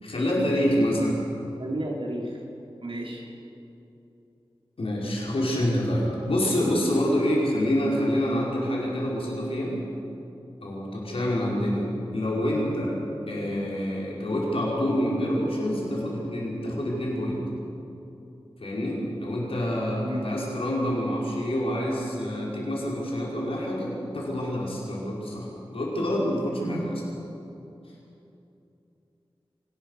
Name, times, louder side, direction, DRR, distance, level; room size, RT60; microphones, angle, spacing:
voice 1, 0.0-1.2 4.8-9.8 10.6-11.9 12.1-13.0 13.3-17.4 18.6-26.9, equal, 85° left, -4 dB, 5.2 m, -27 dB
voice 2, 1.6-2.4 2.8-3.2 20.0-20.2 26.6-26.8, right 1 dB, 70° right, -2 dB, 4.2 m, -32 dB
24.0 x 19.0 x 6.7 m, 2.8 s
wide cardioid pair, 80°, 9 cm